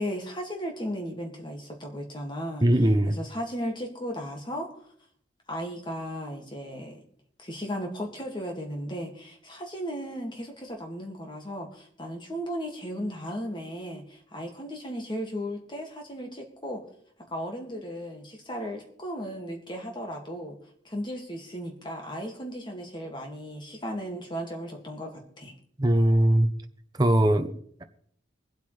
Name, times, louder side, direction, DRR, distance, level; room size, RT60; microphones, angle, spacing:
voice 1, 0.0-2.7 3.1-4.7 5.5-7.0 7.4-16.8 17.3-20.6 20.8-25.5, equal, 25° left, 1 dB, 2.0 m, -35 dB
voice 2, 2.6-3.2 25.8-26.5 27.0-27.8, right 1 dB, 20° right, 7 dB, 0.8 m, -21 dB
24.5 x 8.3 x 3.3 m, 0.64 s
head